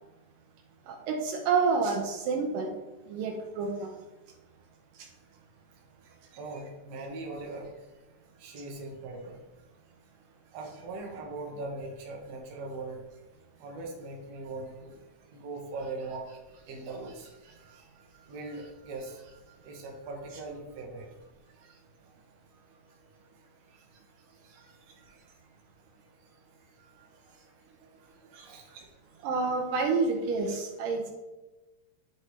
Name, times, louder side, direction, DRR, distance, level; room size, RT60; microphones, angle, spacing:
voice 1, 0.9-2.7 3.1-4.0 28.3-28.5 29.2-31.1, right 4 dB, 80° right, 2 dB, 2.3 m, -29 dB
voice 2, 6.3-7.9 8.3-9.4 10.5-13.0 13.6-15.0 15.3-21.3 21.5-21.8 22.5-22.9 23.4-24.8 25.1-25.2 26.8-27.1 28.3-28.7, right 2 dB, 60° right, 0 dB, 2.0 m, -41 dB
9.8 x 4.1 x 3.1 m, 1.1 s
omnidirectional pair, 4.0 m